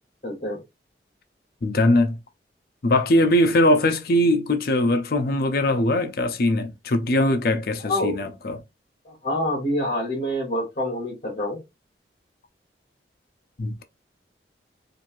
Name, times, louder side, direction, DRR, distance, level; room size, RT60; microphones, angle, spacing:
voice 1, 0.2-0.6 7.8-8.3 9.1-11.6, left 1 dB, 40° left, 1.1 m, -27 dB
voice 2, 1.6-2.2 2.8-8.6 13.6-13.8, left 1 dB, 55° left, 0.5 m, -21 dB
3.1 x 2.6 x 2.5 m
head